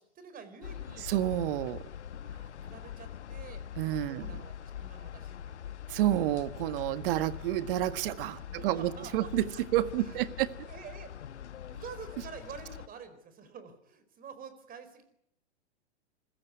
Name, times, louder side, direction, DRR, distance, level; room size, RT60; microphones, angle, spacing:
voice 1, 0.0-1.1 2.3-3.6 4.0-5.6 8.0-9.3 10.0-11.1 11.7-15.0, right 6 dB, 25° right, 4.6 m, -48 dB
sound 1, 0.6-12.9, left 9 dB, 80° left, 1.2 m, -43 dB
voice 2, 1.0-1.8 3.8-4.3 5.9-10.5, right 14 dB, 50° right, 1.6 m, -30 dB
26.0 x 15.5 x 9.7 m
hypercardioid pair, 115°, 34 cm